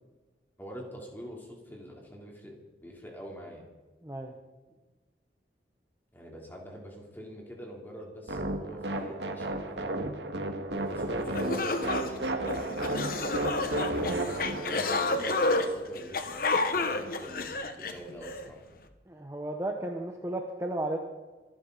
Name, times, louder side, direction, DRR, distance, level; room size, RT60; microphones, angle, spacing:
voice 1, 0.6-3.6 6.1-10.4 10.7-12.8 13.6-18.6, equal, 10° left, -1 dB, 3.3 m, -45 dB
voice 2, 4.0-4.4 19.1-21.0, right 1 dB, 15° right, 2 dB, 1.0 m, -34 dB
sound 1, 8.3-15.7, right 2 dB, 80° right, 1.9 m, -33 dB
sound 2, 10.9-11.0 11.3-18.4, left 2 dB, 55° left, 1.2 m, -30 dB
25.5 x 11.5 x 4.1 m, 1.2 s
head